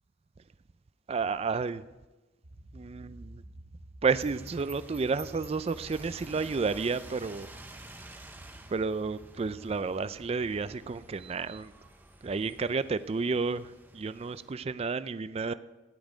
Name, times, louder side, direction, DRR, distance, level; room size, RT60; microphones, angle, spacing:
voice 1, 1.1-1.8 2.7-3.4 4.0-7.5 8.7-11.7 12.2-15.5, right 4 dB, 30° right, 14 dB, 0.3 m, -31 dB
sound 1, 2.4-13.7, right 1 dB, 75° right, 1.9 m, -52 dB
sound 2, 4.1-14.5, right 1 dB, 10° right, 0.7 m, -50 dB
14.0 x 10.0 x 5.0 m, 1.1 s
head